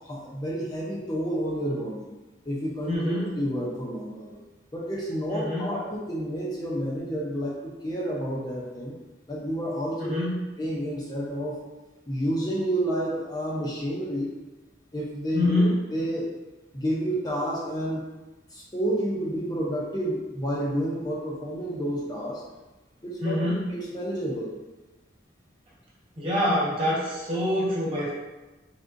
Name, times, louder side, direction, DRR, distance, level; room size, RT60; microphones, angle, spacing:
voice 1, 0.1-2.1 2.5-4.4 4.7-7.5 7.8-8.9 9.3-10.1 10.6-11.6 12.1-14.3 14.9-15.6 15.9-16.3 16.7-18.0 18.5-22.4 23.0-23.4 23.7-24.5, equal, 20° left, -5 dB, 0.6 m, -30 dB
voice 2, 2.9-3.3 5.3-5.7 10.0-10.4 15.3-15.8 23.2-23.7 26.2-28.1, left 1 dB, 30° right, -7 dB, 1.2 m, -25 dB
3.7 x 3.5 x 2.6 m, 1.1 s
head